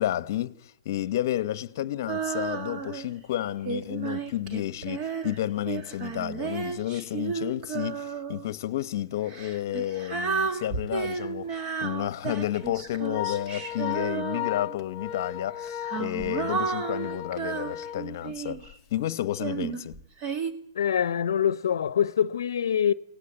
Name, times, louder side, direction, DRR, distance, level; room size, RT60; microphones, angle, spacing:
voice 1, 0.0-20.0, left 13 dB, 45° left, 1.1 m, -31 dB
Female singing, 2.1-3.1 3.7-8.5 9.3-14.8 15.6-18.7 19.4-20.5, right 5 dB, 30° right, 2.5 m, -33 dB
Organ, 10.9-11.1 11.5-11.6 12.4-18.7, left 11 dB, 25° left, 1.0 m, -36 dB
voice 2, 20.8-22.9, left 8 dB, 65° left, 0.9 m, -24 dB
30.0 x 19.0 x 8.1 m
hypercardioid pair, 145°, 2 cm